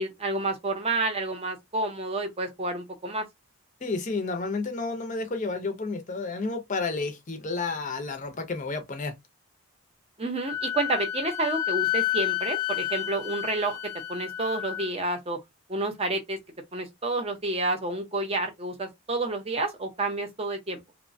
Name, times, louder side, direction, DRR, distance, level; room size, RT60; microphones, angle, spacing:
voice 1, 0.0-3.2 10.2-13.8 14.1-15.4 15.7-16.4 16.7-20.8, right 2 dB, 25° right, 0.6 m, -29 dB
voice 2, 3.8-9.1, left 3 dB, 35° left, 0.6 m, -31 dB
Wind instrument woodwind instrument, 10.5-14.9, left 13 dB, 90° left, 0.4 m, -30 dB
2.9 x 2.1 x 2.6 m
head